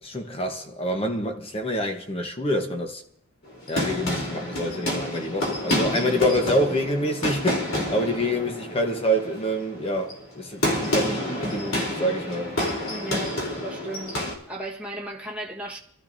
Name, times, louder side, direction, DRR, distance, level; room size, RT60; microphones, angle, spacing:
voice 1, 0.0-3.0 3.7-12.6, equal, 25° left, 1.0 m, -27 dB
sound 1, 3.5-14.3, left 1 dB, 60° left, 3.6 m, -29 dB
voice 2, 12.9-14.2 14.5-15.8, right 1 dB, 5° right, 1.4 m, -35 dB
28.0 x 13.5 x 2.7 m
head